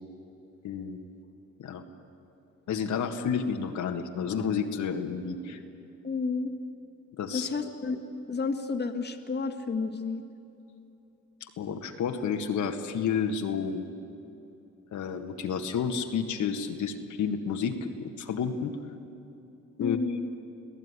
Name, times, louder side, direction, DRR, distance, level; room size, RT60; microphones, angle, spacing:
voice 1, 0.6-1.0 1.6-1.8 2.7-5.6 7.2-7.5 11.4-13.9 14.9-18.7 19.8-20.0, left 6 dB, 70° left, 4 dB, 1.7 m, -30 dB
voice 2, 6.0-6.5 7.3-8.0 8.3-10.2 19.8-20.3, left 4 dB, 35° left, 5 dB, 1.8 m, -31 dB
25.5 x 16.5 x 9.7 m, 2.9 s
cardioid pair, 90°, 30 cm